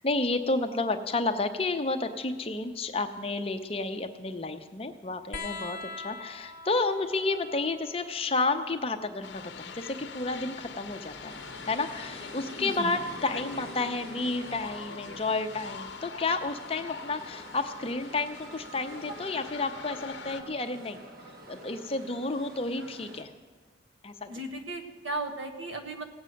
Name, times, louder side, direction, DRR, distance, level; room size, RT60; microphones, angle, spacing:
voice 1, 0.0-11.4 11.7-21.0 21.5-23.3 24.0-24.3, left 3 dB, 30° left, 7 dB, 0.7 m, -31 dB
sound 1, 5.3-12.4 13.8-14.6 15.9-16.0, left 3 dB, 45° left, 1.1 m, -46 dB
sound 2, 9.2-20.4, left 6 dB, 60° left, 0.7 m, -44 dB
sound 3, 11.3-23.2, equal, 50° right, 1.3 m, -47 dB
voice 2, 12.6-13.0 24.3-26.0, right 2 dB, 80° right, 5 dB, 1.4 m, -36 dB
17.5 x 8.0 x 6.4 m, 1.5 s
head